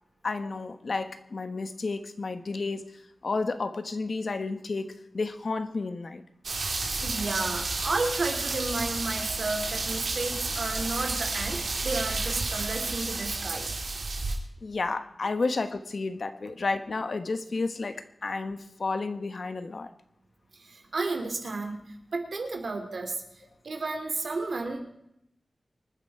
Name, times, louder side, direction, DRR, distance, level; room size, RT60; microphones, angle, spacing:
voice 1, 0.2-6.2 14.6-19.9, left 3 dB, 65° left, 9 dB, 1.2 m, -31 dB
sound 1, 6.4-14.3, right 3 dB, 90° right, 2.8 m, -31 dB
voice 2, 6.9-13.7 20.6-21.8 22.1-23.2 23.6-24.8, right 3 dB, 70° right, 4 dB, 2.9 m, -32 dB
25.0 x 9.8 x 4.9 m, 0.77 s
wide cardioid pair, 80°, 0 cm